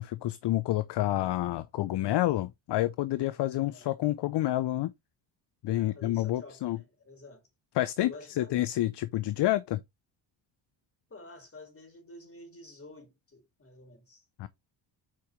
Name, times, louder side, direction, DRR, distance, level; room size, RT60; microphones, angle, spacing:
voice 1, 0.0-4.9 5.6-6.8 7.8-8.1 8.4-9.8 14.4-14.5, left 15 dB, 55° left, 0.6 m, -28 dB
voice 2, 3.5-3.9 5.7-7.5 8.0-8.5 11.1-14.3, left 2 dB, 25° left, 4.0 m, -49 dB
7.6 x 4.9 x 3.1 m
cardioid pair, 90°, 50 cm